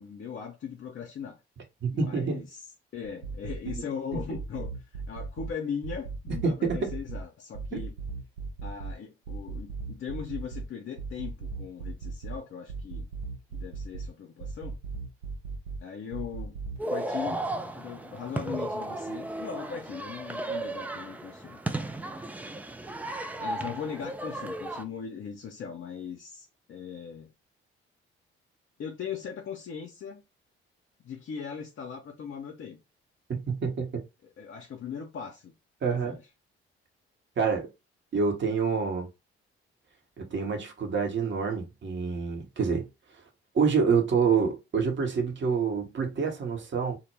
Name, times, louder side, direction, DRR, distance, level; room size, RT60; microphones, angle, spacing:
voice 1, 0.0-1.4 1.9-2.6 2.9-7.9 8.6-13.1 13.5-14.8 15.8-16.6 16.9-21.6 23.4-27.3 28.8-30.2 31.0-32.8 34.4-35.5 36.0-36.2, left 7 dB, 45° left, 0.6 m, -39 dB
voice 2, 1.8-2.4 3.8-3.9 6.4-6.9 33.3-34.0 35.8-36.1 37.4-37.7 38.1-39.1 40.2-42.9 43.5-47.0, right 5 dB, 40° right, 0.9 m, -27 dB
sound 1, 3.0-3.8 4.1-5.5 5.8-7.2 7.5-8.9 9.3-10.6 11.0-12.4 12.7-14.1 14.4-15.8 16.1-16.8, right 4 dB, 75° right, 0.8 m, -37 dB
sound 2, 16.8-24.8, right 2 dB, 5° right, 0.3 m, -35 dB
2.0 x 2.0 x 3.1 m
hypercardioid pair, 45°, 30 cm